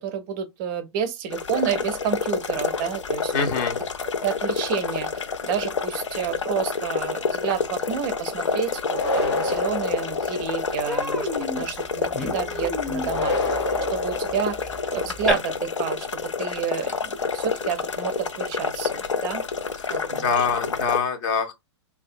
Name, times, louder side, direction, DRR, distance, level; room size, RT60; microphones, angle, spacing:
voice 1, 0.0-3.4 4.2-11.3 11.5-13.4 13.9-14.6 14.9-19.4 19.9-20.5, right 8 dB, 40° right, 0.5 m, -30 dB
sound 1, 1.3-21.0, left 5 dB, 85° left, 0.4 m, -29 dB
voice 2, 3.3-3.8 19.9-21.5, left 5 dB, 40° left, 0.7 m, -25 dB
sound 2, 8.8-10.9 13.0-15.1, left 2 dB, 65° left, 0.9 m, -28 dB
Human voice, 9.8-9.9 10.2-10.4 10.8-15.3, right 1 dB, ahead, 0.7 m, -31 dB
2.5 x 2.3 x 2.4 m
figure-of-eight pair, 105°, 15 cm